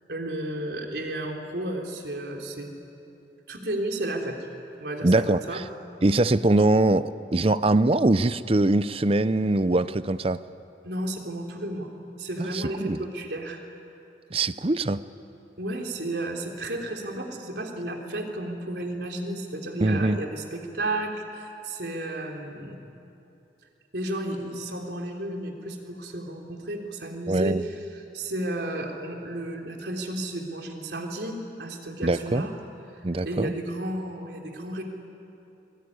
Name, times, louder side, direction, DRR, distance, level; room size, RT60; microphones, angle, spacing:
voice 1, 0.1-2.8 3.5-4.4 4.8-5.6 10.8-11.9 12.2-13.6 15.6-22.8 23.9-32.5 33.0-34.8, right 1 dB, 70° right, 1 dB, 3.4 m, -33 dB
voice 2, 5.0-5.6 6.0-10.4 12.4-13.0 14.3-15.0 19.8-20.2 27.3-27.6 32.0-32.4 33.0-33.5, right 2 dB, 30° right, 15 dB, 0.6 m, -22 dB
25.5 x 21.5 x 9.8 m, 2.8 s
head